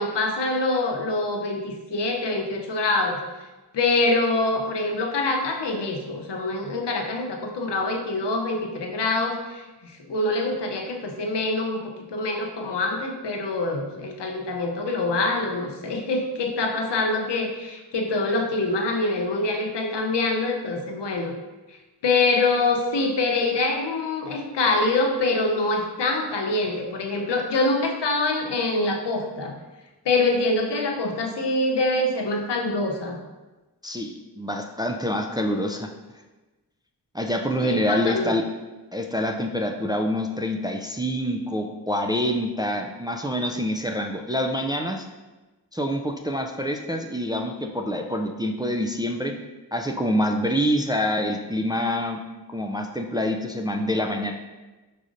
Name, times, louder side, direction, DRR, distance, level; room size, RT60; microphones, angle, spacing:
voice 1, 0.0-3.2 3.7-21.3 21.7-21.8 22.0-29.6 30.0-33.2 37.6-38.3, left 2 dB, 75° left, 2 dB, 0.7 m, -25 dB
voice 2, 33.8-35.9 37.1-38.4 38.9-45.1 45.7-49.3 49.7-52.2 52.5-54.3, equal, 10° right, 3 dB, 0.3 m, -26 dB
4.9 x 4.1 x 2.6 m, 1.2 s
cardioid pair, 40°, 42 cm